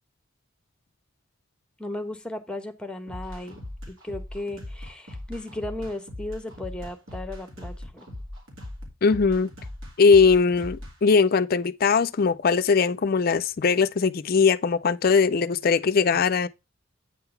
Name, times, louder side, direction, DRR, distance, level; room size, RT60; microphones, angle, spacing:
voice 1, 1.8-3.6 3.9-8.1, left 1 dB, 5° left, 0.9 m, -35 dB
sound 1, 3.1-10.9, left 1 dB, 80° right, 2.8 m, -39 dB
voice 2, 9.0-9.5 10.0-16.5, left 5 dB, 45° left, 0.4 m, -20 dB
8.8 x 3.8 x 5.7 m
head